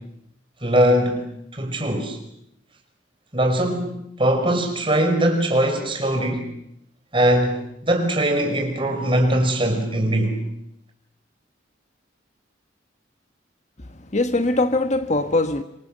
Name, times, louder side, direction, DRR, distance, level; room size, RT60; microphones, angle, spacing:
voice 1, 0.6-1.3 1.5-2.2 3.3-6.5 7.1-10.4, right 1 dB, 25° right, 5.2 m, -21 dB
voice 2, 13.8-15.6, left 2 dB, 40° left, 1.3 m, -22 dB
26.5 x 26.0 x 7.5 m
head